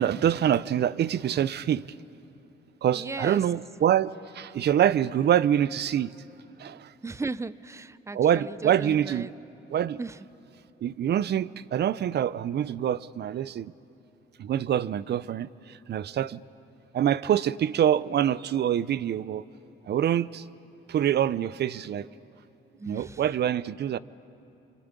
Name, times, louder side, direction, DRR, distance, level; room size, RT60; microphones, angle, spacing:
voice 1, 0.0-1.8 2.8-4.1 4.4-6.1 6.6-6.8 8.1-9.3 9.7-10.0 10.8-13.7 14.4-15.5 15.9-16.4 16.9-19.4 19.9-20.4 20.9-22.1 22.9-24.0, right 10 dB, 55° right, 18 dB, 0.6 m, -25 dB
voice 2, 2.9-3.4 7.0-9.3 10.0-10.2 22.8-23.2, right 3 dB, 15° right, 17 dB, 0.6 m, -36 dB
27.5 x 25.0 x 8.4 m, 2.8 s
cardioid pair, 90°, 20 cm